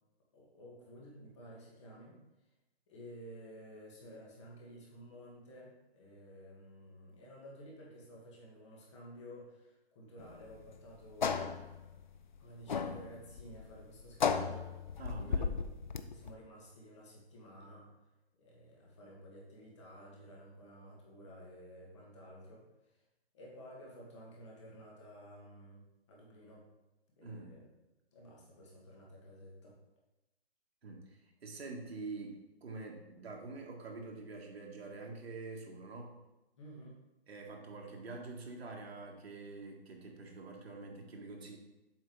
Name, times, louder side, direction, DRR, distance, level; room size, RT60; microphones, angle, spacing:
voice 1, 0.3-2.2 2.9-11.7 12.4-14.9 15.2-17.9 18.4-23.0 23.3-26.7 27.2-27.6 28.1-29.8 36.6-36.9, equal, 25° left, -3 dB, 1.7 m, -53 dB
sound 1, 10.2-16.3, left 6 dB, 45° left, 0.5 m, -36 dB
voice 2, 15.0-15.6 27.2-27.6 30.8-36.2 37.3-41.6, right 3 dB, 70° right, 0 dB, 1.8 m, -46 dB
7.7 x 3.6 x 5.4 m, 1.0 s
hypercardioid pair, 170°, 33 cm